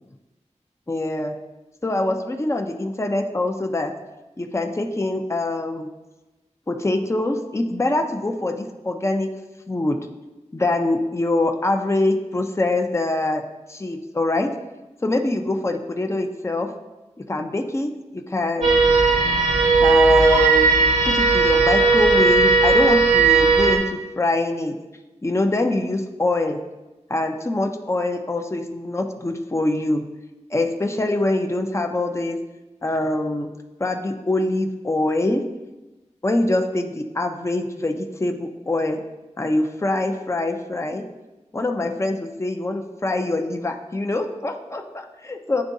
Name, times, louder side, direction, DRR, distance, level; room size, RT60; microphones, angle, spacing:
voice 1, 0.9-1.4 1.8-3.9 4.4-5.9 6.7-9.3 9.7-10.0 10.5-13.4 13.7-14.5 15.0-16.7 17.3-18.9 19.8-20.9 21.1-24.7 25.2-26.6 27.1-30.0 30.5-32.4 32.8-33.5 33.8-35.4 36.2-39.0 39.4-41.0 41.5-45.6, left 2 dB, 25° left, 4 dB, 0.6 m, -24 dB
sound 1, 18.6-23.8, right 3 dB, 70° right, 1.0 m, -16 dB
10.5 x 3.6 x 2.7 m, 1.1 s
wide cardioid pair, 60°, 12 cm